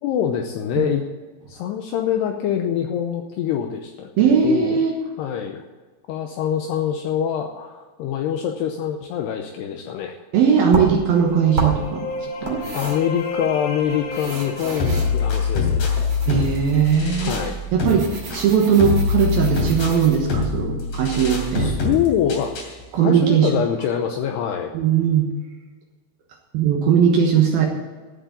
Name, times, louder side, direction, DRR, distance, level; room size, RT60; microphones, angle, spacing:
voice 1, 0.0-1.1 1.5-4.8 5.2-5.6 6.1-10.2 12.4-16.0 17.2-17.5 21.5-22.5 23.0-24.7, left 9 dB, 85° left, 4 dB, 2.4 m, -25 dB
voice 2, 4.2-4.9 10.3-12.1 12.4-12.6 16.3-17.4 17.7-21.7 22.9-23.5 24.7-25.3 26.5-27.7, right 7 dB, 70° right, 2 dB, 2.4 m, -19 dB
sound 1, 10.6-20.2, right 3 dB, 35° right, 2.2 m, -32 dB
sound 2, 10.9-16.6, left 2 dB, 70° left, 2.4 m, -34 dB
sound 3, 14.8-22.8, left 4 dB, 50° left, 3.9 m, -24 dB
14.5 x 7.5 x 8.3 m, 1.3 s
omnidirectional pair, 5.7 m